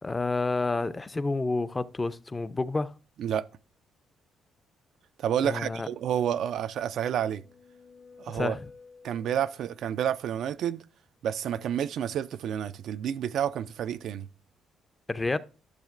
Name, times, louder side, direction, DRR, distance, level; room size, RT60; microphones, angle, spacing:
voice 1, 0.0-2.9 5.4-5.9 8.3-8.7 15.1-15.4, left 3 dB, 20° left, 0.4 m, -29 dB
voice 2, 5.2-7.4 8.2-8.5 9.0-10.8 11.2-14.3, right 9 dB, 75° right, 0.3 m, -29 dB
sound 1, 6.9-9.8, left 4 dB, 65° left, 2.4 m, -53 dB
12.0 x 6.4 x 2.5 m
cardioid pair, 90°, 0 cm